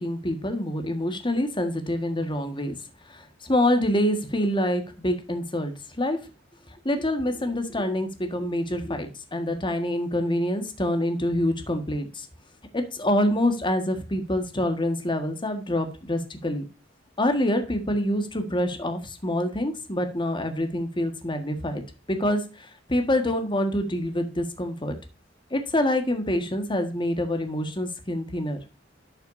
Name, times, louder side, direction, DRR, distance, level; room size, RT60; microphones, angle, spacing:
voice 1, 0.0-2.7 3.1-6.2 6.8-12.3 12.7-16.6 17.2-21.8 22.1-25.0 25.5-28.6, left 1 dB, 25° left, 6 dB, 1.6 m, -26 dB
12.0 x 6.5 x 2.7 m, 0.32 s
head